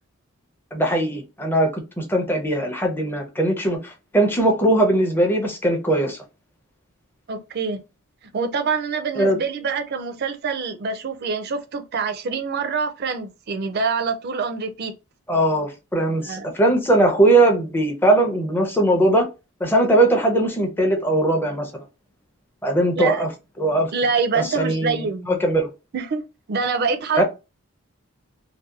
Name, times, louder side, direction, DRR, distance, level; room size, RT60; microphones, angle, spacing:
voice 1, 0.7-6.2 9.1-9.4 15.3-19.3 19.6-21.8 22.6-23.3 23.6-23.9 24.4-25.0 25.3-25.7 27.1-27.2, right 1 dB, 10° left, 0.5 m, -20 dB
voice 2, 7.3-7.8 8.3-14.9 16.2-16.5 23.0-23.2 23.9-25.4 25.9-27.2, right 5 dB, 45° right, 0.4 m, -25 dB
2.7 x 2.1 x 2.3 m
head